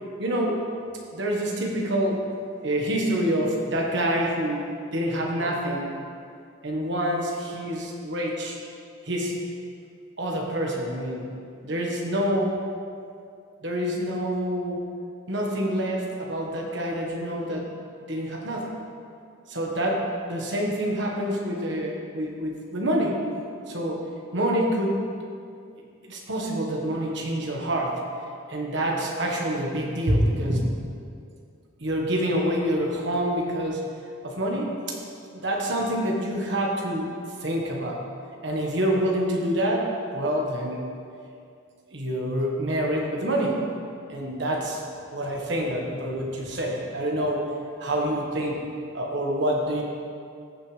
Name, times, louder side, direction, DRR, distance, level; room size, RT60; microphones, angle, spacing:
voice 1, 0.2-0.6 1.1-2.2 2.6-6.0 6.6-8.6 9.0-9.3 10.2-11.3 11.6-12.6 13.6-14.8 15.3-17.6 18.1-18.7 19.5-23.2 23.7-24.0 24.3-25.1 26.1-27.9 28.5-30.7 31.8-33.8 34.2-35.0 35.3-37.1 37.4-38.0 38.4-40.9 41.9-43.7 44.1-44.8 45.1-47.4 47.8-48.7 48.9-49.8, equal, 60° right, -1 dB, 1.4 m, -27 dB
14.5 x 6.5 x 3.3 m, 2.4 s
head